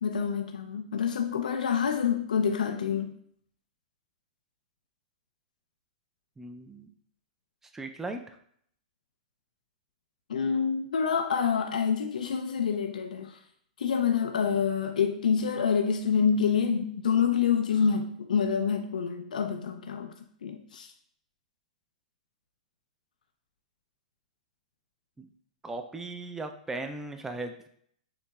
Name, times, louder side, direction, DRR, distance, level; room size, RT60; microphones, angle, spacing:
voice 1, 0.0-3.2 10.3-13.4 13.8-20.1 20.4-20.9, left 6 dB, 85° left, 6 dB, 0.4 m, -27 dB
voice 2, 6.4-6.9 7.7-8.4 25.2-25.3 25.6-27.5, right 2 dB, 10° right, 6 dB, 0.5 m, -37 dB
7.0 x 2.8 x 2.3 m, 0.65 s
hypercardioid pair, 125°, 4 cm